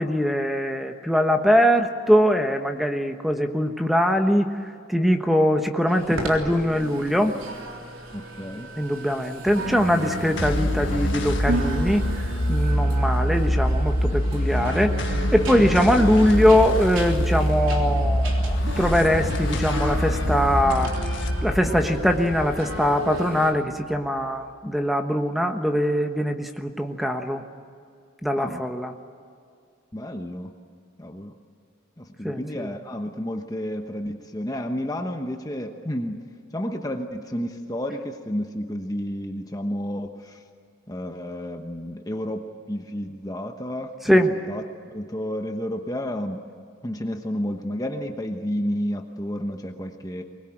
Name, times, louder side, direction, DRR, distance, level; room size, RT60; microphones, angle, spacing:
voice 1, 0.0-4.5 4.9-7.3 8.8-14.9 15.3-20.9 21.4-27.4 28.2-28.9 32.2-32.7 44.1-44.3, equal, ahead, 5 dB, 1.3 m, -22 dB
sound 1, 5.9-23.5, right 2 dB, 70° right, 3.7 m, -35 dB
voice 2, 8.1-8.7 24.6-24.8 28.4-28.6 29.9-30.5 31.0-31.3 32.0-36.2 36.5-40.4 40.9-46.4 46.8-50.2, equal, 15° left, 4 dB, 1.1 m, -31 dB
sound 2, 9.5-24.1, equal, 60° left, 1.7 m, -25 dB
24.0 x 20.5 x 8.9 m, 2.3 s
head